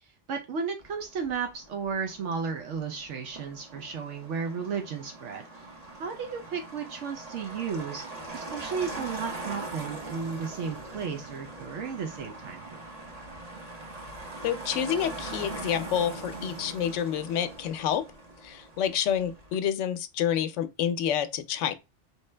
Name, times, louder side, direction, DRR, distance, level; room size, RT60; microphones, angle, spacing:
voice 1, 0.3-5.5 6.0-8.0 8.3-12.8, right 6 dB, 75° right, 0.9 m, -34 dB
Motor vehicle (road), 0.8-19.5, right 2 dB, 35° right, 1.1 m, -42 dB
voice 2, 14.4-18.0 18.4-21.7, left 9 dB, 85° left, 0.9 m, -28 dB
4.2 x 3.2 x 3.2 m
omnidirectional pair, 1.2 m